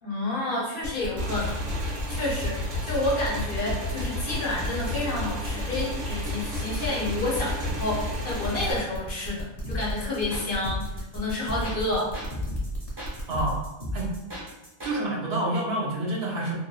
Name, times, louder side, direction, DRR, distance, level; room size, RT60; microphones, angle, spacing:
voice 1, 0.0-12.2, left 2 dB, 50° left, -4 dB, 0.9 m, -30 dB
sound 1, 0.8-13.5, right 1 dB, 30° left, 1.1 m, -36 dB
Motorcycle / Engine, 1.2-8.7, left 1 dB, 90° right, 1.0 m, -32 dB
sound 2, 9.6-15.0, equal, 20° right, 0.9 m, -34 dB
voice 2, 13.3-13.6 13.9-14.1 14.8-16.6, right 1 dB, 60° right, -4 dB, 0.9 m, -28 dB
2.8 x 2.5 x 2.3 m, 1.0 s
omnidirectional pair, 1.3 m